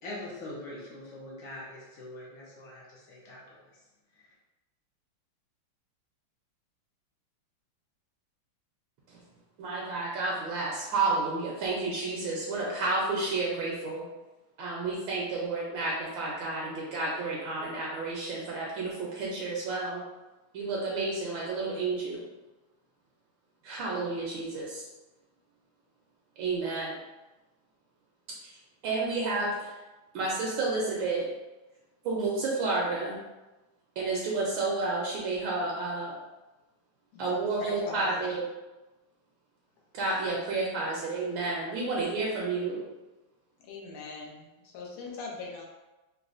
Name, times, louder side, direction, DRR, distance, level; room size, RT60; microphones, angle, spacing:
voice 1, 0.0-3.7 4.1-4.3, left 1 dB, 70° left, -5 dB, 1.2 m, -43 dB
voice 2, 9.6-14.0 14.6-20.0 20.5-22.2 23.6-24.8 26.4-27.0 28.4-28.5 28.8-29.7 30.1-31.2 32.0-33.2 34.0-36.1 37.2-38.4 39.9-42.8, right 3 dB, 75° right, -4 dB, 1.3 m, -31 dB
voice 3, 37.6-38.3 40.9-41.0 43.6-45.6, left 4 dB, 85° left, -1 dB, 1.5 m, -41 dB
4.0 x 2.1 x 2.4 m, 1.1 s
omnidirectional pair, 2.2 m